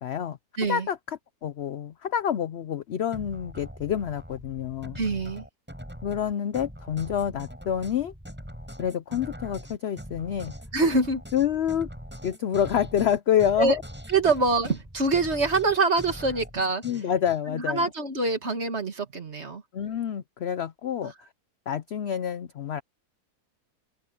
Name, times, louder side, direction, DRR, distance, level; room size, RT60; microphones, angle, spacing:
voice 1, 0.0-0.4 0.7-5.0 6.0-8.1 8.8-10.5 11.3-11.9 12.2-13.8 16.8-17.9 19.7-21.1 21.7-22.8, left 9 dB, 65° left, 0.7 m, -27 dB
voice 2, 0.6-0.9 5.0-5.4 10.7-11.2 13.6-13.8 14.1-16.8 17.5-19.6 21.0-21.1, right 3 dB, 45° right, 2.3 m, -25 dB
sound 1, 3.1-17.4, equal, 5° right, 7.0 m, -42 dB
open air
omnidirectional pair, 1.7 m